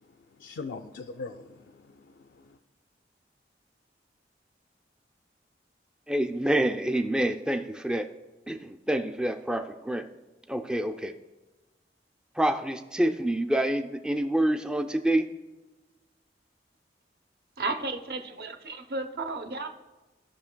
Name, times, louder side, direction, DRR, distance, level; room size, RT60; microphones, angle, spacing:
voice 1, 0.4-2.6, left 4 dB, 75° left, 7 dB, 0.4 m, -41 dB
voice 2, 6.1-8.1 8.5-10.1 10.5-11.1 12.4-15.3, right 1 dB, 5° right, 6 dB, 0.3 m, -27 dB
voice 3, 17.6-19.7, right 3 dB, 55° right, 6 dB, 0.7 m, -33 dB
16.0 x 5.7 x 2.2 m, 1.2 s
head